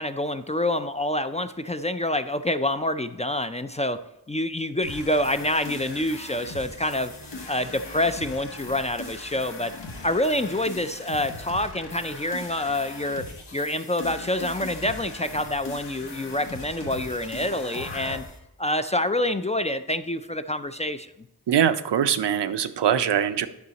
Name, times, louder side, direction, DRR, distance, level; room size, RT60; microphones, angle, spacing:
voice 1, 0.0-4.0 4.3-7.1 7.5-9.7 10.0-13.3 13.5-18.2 18.6-21.1, left 1 dB, 20° left, 10 dB, 0.3 m, -27 dB
sound 1, 4.8-18.4, left 3 dB, 85° left, 1.3 m, -39 dB
voice 2, 21.5-23.5, right 9 dB, 80° right, 11 dB, 0.5 m, -22 dB
9.5 x 5.6 x 4.0 m, 0.89 s
cardioid pair, 45°, 41 cm